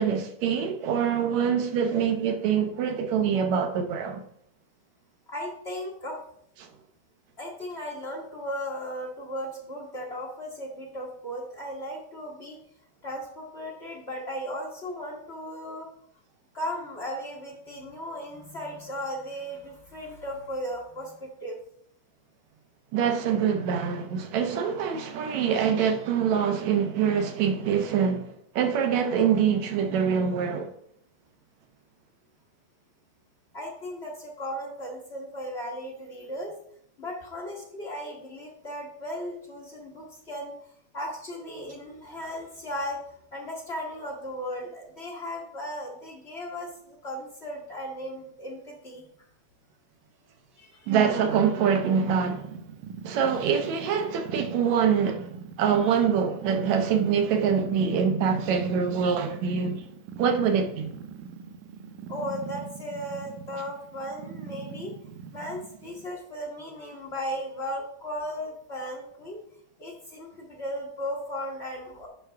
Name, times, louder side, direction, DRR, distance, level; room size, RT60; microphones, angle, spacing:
voice 1, 0.0-4.2 22.9-30.7 50.9-52.5 53.1-55.3 55.6-59.8 60.2-60.9, right 7 dB, 75° right, 1.9 m, -25 dB
voice 2, 5.3-6.2 7.4-12.6 13.0-15.9 16.5-21.6 33.5-36.5 37.0-40.5 40.9-43.0 43.3-49.0 50.6-50.9 55.8-55.9 62.1-64.9 65.3-69.4 69.8-72.1, equal, 50° left, 0.7 m, -36 dB
Purr, 51.3-66.1, right 6 dB, 90° right, 2.1 m, -42 dB
9.9 x 5.6 x 3.4 m
omnidirectional pair, 3.6 m